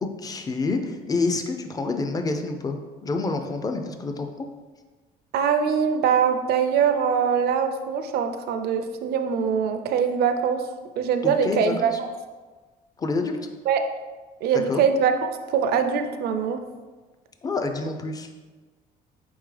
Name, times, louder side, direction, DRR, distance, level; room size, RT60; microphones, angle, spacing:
voice 1, 0.0-4.5 11.2-12.0 13.0-13.4 14.7-14.8 17.4-18.3, left 3 dB, 20° left, 5 dB, 0.4 m, -28 dB
voice 2, 5.3-10.7 11.0-12.1 13.7-13.8 14.4-16.6, right 7 dB, 70° right, 8 dB, 0.5 m, -23 dB
4.4 x 3.6 x 3.2 m, 1.3 s
cardioid pair, 110°, 17 cm